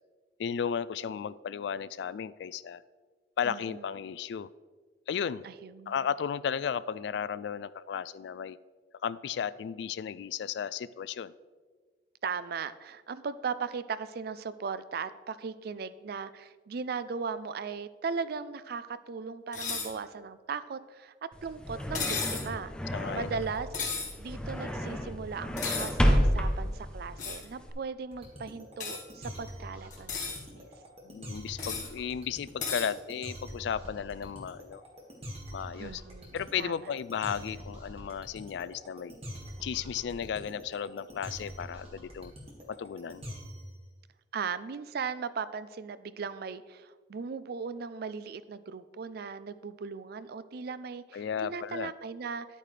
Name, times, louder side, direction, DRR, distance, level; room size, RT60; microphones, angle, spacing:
voice 1, 0.4-2.8 3.4-4.5 5.1-5.4 5.9-8.6 9.0-11.3 22.9-23.4 31.0-34.8 35.5-36.0 36.3-39.1 39.6-42.3 42.7-43.2 51.1-51.9, left 7 dB, 70° left, 17 dB, 0.3 m, -34 dB
voice 2, 3.4-3.9 5.4-6.0 12.2-21.1 21.4-23.7 24.2-30.7 35.8-36.7 44.3-52.5, right 5 dB, 60° right, 14 dB, 0.4 m, -38 dB
sound 1, 19.5-19.9 21.9-22.5 23.7-24.1 25.6-25.9 27.2-27.4 28.8-29.0 29.9-30.4 31.6-31.9 32.6-32.9, left 5 dB, 45° left, 1.6 m, -33 dB
sound 2, 21.3-27.7, equal, 5° left, 0.7 m, -30 dB
sound 3, 28.1-43.7, equal, 35° right, 2.0 m, -44 dB
10.5 x 8.5 x 3.3 m, 1.4 s
head